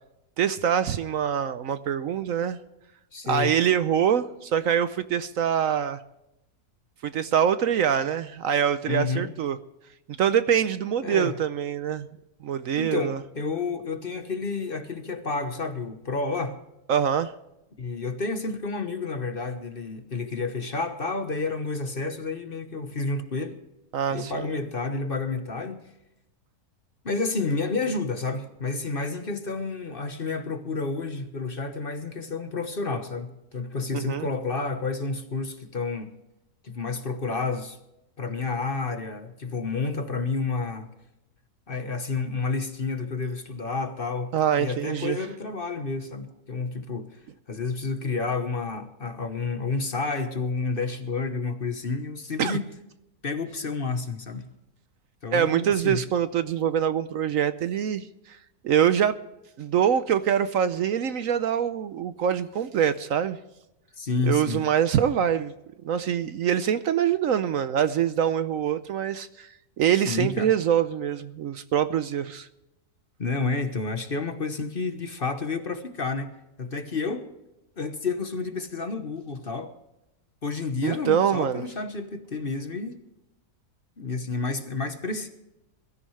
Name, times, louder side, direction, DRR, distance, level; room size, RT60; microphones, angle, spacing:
voice 1, 0.4-2.6 3.2-6.0 7.0-9.6 10.2-12.1 12.4-13.2 16.9-17.3 23.9-24.5 33.9-34.3 44.3-45.2 52.4-52.6 55.3-58.4 58.6-59.2 59.6-63.4 64.2-65.5 65.8-69.5 69.8-72.5 80.8-81.6, right 9 dB, 65° right, 1.0 m, -24 dB
voice 2, 3.1-3.5 8.8-9.3 11.0-11.3 12.8-16.6 17.8-23.6 24.1-25.8 27.0-36.1 36.6-37.8 38.2-40.9 41.7-47.2 47.5-52.7 53.2-54.5 55.2-56.0 64.0-64.6 70.1-70.5 73.2-76.3 76.6-77.2 77.8-79.7 80.4-83.0 84.0-85.3, left 4 dB, 40° left, 1.2 m, -30 dB
22.0 x 14.0 x 3.2 m
omnidirectional pair, 1.6 m